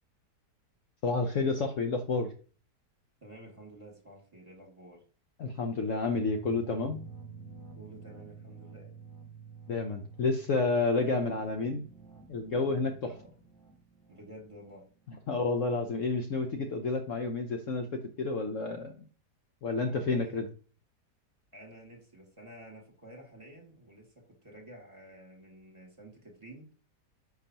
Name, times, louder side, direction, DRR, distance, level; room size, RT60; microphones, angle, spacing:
voice 1, 1.0-2.3 5.4-7.0 9.7-11.8 12.3-13.1 15.3-18.9 19.6-20.5, left 3 dB, 55° left, 5 dB, 1.0 m, -30 dB
voice 2, 3.2-5.0 7.7-8.9 13.0-13.4 14.1-14.9 19.8-20.4 21.5-26.7, right 1 dB, 20° right, 1 dB, 2.1 m, -51 dB
sound 1, 6.1-13.0, right 7 dB, 75° right, 1.1 m, -48 dB
sound 2, 6.7-15.6, left 1 dB, ahead, 2.3 m, -58 dB
10.5 x 6.0 x 2.9 m, 0.39 s
omnidirectional pair, 1.8 m